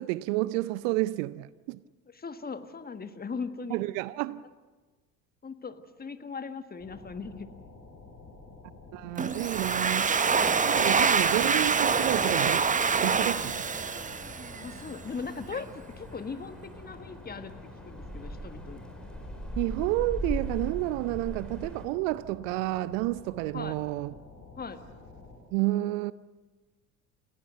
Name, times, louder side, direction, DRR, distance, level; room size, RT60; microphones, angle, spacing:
voice 1, 0.0-1.8 3.7-4.4 8.9-10.1 10.6-13.7 19.6-24.1 25.5-26.1, right 18 dB, 50° right, 0.6 m, -30 dB
voice 2, 2.1-3.8 5.4-7.5 14.6-15.7 16.0-17.5 17.8-18.8 23.5-23.8 24.6-24.9, left 5 dB, 20° left, 1.6 m, -39 dB
sound 1, 6.8-25.4, left 3 dB, 50° left, 5.3 m, -50 dB
Domestic sounds home sounds, 9.2-14.8, right 5 dB, 15° right, 1.0 m, -26 dB
sound 2, 11.1-21.8, equal, ahead, 3.6 m, -41 dB
28.5 x 16.5 x 8.0 m
figure-of-eight pair, 65°, 49 cm